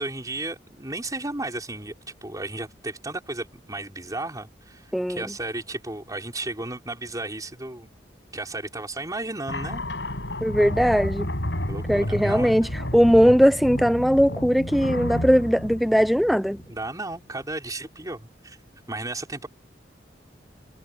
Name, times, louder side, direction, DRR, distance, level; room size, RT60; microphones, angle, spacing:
voice 1, 0.0-1.9 2.2-7.9 8.3-9.8 11.7-12.7 16.7-18.6 18.9-19.5, right 2 dB, 20° right, 5.0 m, -34 dB
voice 2, 4.9-5.2 10.4-11.3 11.9-12.7 12.9-16.6, equal, ahead, 0.8 m, -19 dB
sound 1, 9.5-16.9, left 1 dB, 85° left, 7.9 m, -31 dB
head